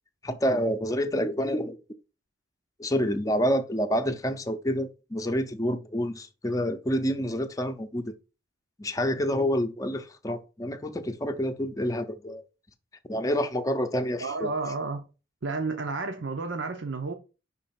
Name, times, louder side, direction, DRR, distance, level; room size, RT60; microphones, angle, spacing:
voice 1, 0.2-1.8 2.8-8.1 8.8-12.4 13.1-14.5, equal, 20° left, 0.6 m, -28 dB
voice 2, 14.2-15.0 15.4-17.1, right 3 dB, 80° right, 0.8 m, -31 dB
5.4 x 3.9 x 5.8 m
head